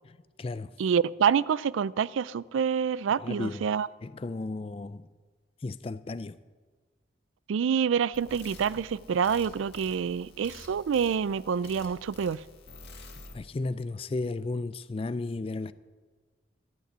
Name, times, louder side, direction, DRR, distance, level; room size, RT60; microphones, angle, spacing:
voice 1, 0.0-0.7 3.2-3.7 4.0-5.1 5.6-6.4 13.3-15.7, left 3 dB, 30° left, 0.3 m, -34 dB
voice 2, 0.8-3.9 7.5-12.4, right 7 dB, 80° right, 0.3 m, -27 dB
sound 1, 8.1-13.3, left 2 dB, 60° left, 2.3 m, -49 dB
13.0 x 6.7 x 9.9 m
head